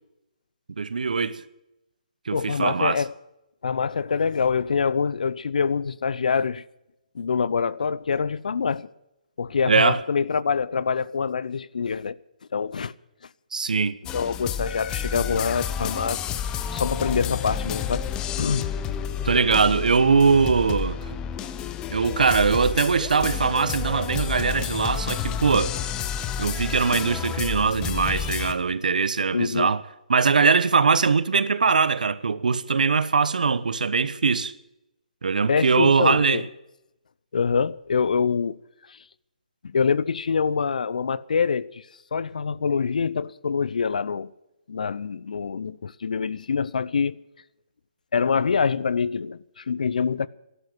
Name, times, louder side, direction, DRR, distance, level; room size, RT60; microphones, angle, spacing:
voice 1, 0.8-1.4 2.3-3.0 9.7-10.0 13.5-14.0 19.2-21.1 21.9-25.7 26.4-29.8 30.1-34.5 35.2-36.4, right 5 dB, 70° right, 1.1 m, -21 dB
voice 2, 2.3-3.1 3.6-6.6 7.1-8.9 9.4-12.2 12.5-12.9 14.1-16.2 16.7-18.1 18.4-18.7 29.3-29.7 35.5-36.4 37.3-38.6 38.9-39.0 39.6-41.8 42.1-44.3 44.7-47.2 48.1-50.3, left 5 dB, 65° left, 0.6 m, -25 dB
sound 1, 14.1-28.5, left 8 dB, 15° left, 0.8 m, -30 dB
13.0 x 11.5 x 8.1 m
figure-of-eight pair, 145°, 5 cm